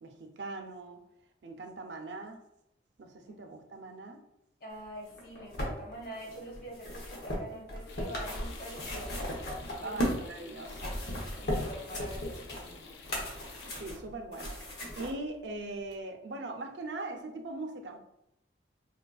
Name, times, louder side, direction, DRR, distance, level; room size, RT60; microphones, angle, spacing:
voice 1, 0.0-1.0 1.4-2.4 3.0-4.2 9.8-11.0 13.6-14.6 15.0-18.0, right 2 dB, 90° right, 4 dB, 0.5 m, -40 dB
voice 2, 4.6-9.3 9.8-10.1 10.4-10.6 11.4-12.8, equal, 50° left, -2 dB, 1.1 m, -45 dB
sound 1, 5.1-10.3 10.6-15.1 15.9-16.0, equal, 65° left, 0.9 m, -36 dB
sound 2, 7.9-13.8, left 4 dB, 85° left, 0.5 m, -51 dB
4.3 x 2.4 x 2.3 m, 0.81 s
head